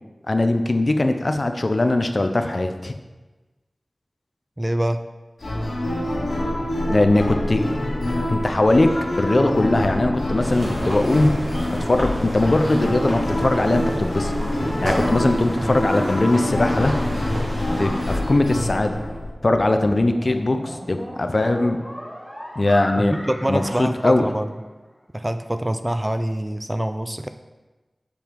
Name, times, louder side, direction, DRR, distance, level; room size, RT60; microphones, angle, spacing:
voice 1, 0.3-3.0 6.9-7.6 8.3-8.9 9.2-11.3 11.7-14.3 14.8-17.0 17.8-19.0 19.4-21.8 22.6-23.2 23.5-24.3, left 2 dB, 50° left, 6 dB, 0.6 m, -20 dB
voice 2, 4.6-5.0 15.6-15.8 23.0-24.5 25.1-27.3, right 1 dB, 15° right, 8 dB, 0.4 m, -25 dB
sound 1, 5.4-19.3, left 1 dB, 75° left, 1.9 m, -26 dB
sound 2, 10.4-18.2, equal, 60° right, 2.2 m, -30 dB
sound 3, 19.4-24.9, equal, ahead, 2.3 m, -38 dB
7.0 x 5.3 x 4.6 m, 1.2 s
wide cardioid pair, 65°, 0 cm